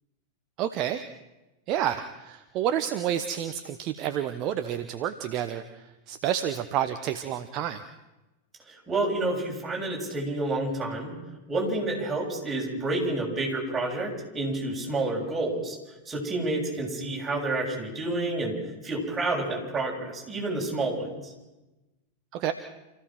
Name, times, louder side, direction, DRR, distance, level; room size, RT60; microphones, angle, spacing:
voice 1, 0.6-1.0 1.7-7.8 22.3-22.5, right 10 dB, 40° right, 9 dB, 1.1 m, -29 dB
voice 2, 8.7-11.1 11.5-15.8 16.0-18.6 18.8-21.3, right 2 dB, 15° right, -2 dB, 6.8 m, -29 dB
28.0 x 16.0 x 6.2 m, 1.0 s
figure-of-eight pair, 90°, 0 cm